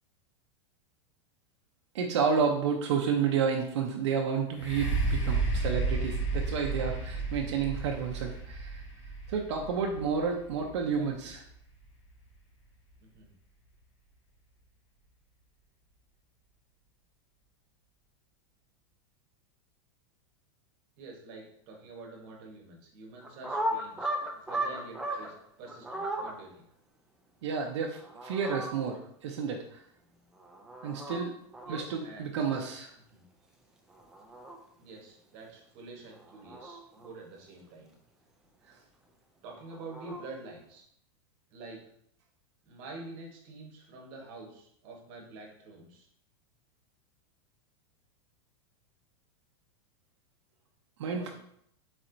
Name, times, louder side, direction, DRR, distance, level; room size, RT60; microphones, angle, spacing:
voice 1, 1.9-8.9 9.3-11.4 27.4-29.8 30.8-31.4 31.7-32.9 38.7-38.8 51.0-51.3, right 6 dB, 75° right, 1 dB, 0.6 m, -31 dB
sound 1, 4.5-12.3 12.9-13.0, right 3 dB, 75° left, 1.6 m, -33 dB
voice 2, 10.6-11.3 13.0-13.3 21.0-26.6 31.6-32.6 33.1-33.2 34.8-37.9 39.4-40.8 41.5-41.9 42.6-46.1 51.1-51.3, right 3 dB, 35° right, 0 dB, 1.1 m, -47 dB
sound 2, 23.2-25.3 25.6-26.3 27.9-28.7 30.4-31.2 31.5-31.8 33.9-34.6 36.1-37.1 39.5-40.3, right 1 dB, 5° right, 0.3 m, -36 dB
4.3 x 4.1 x 2.6 m, 0.68 s
supercardioid pair, 165°, 15 cm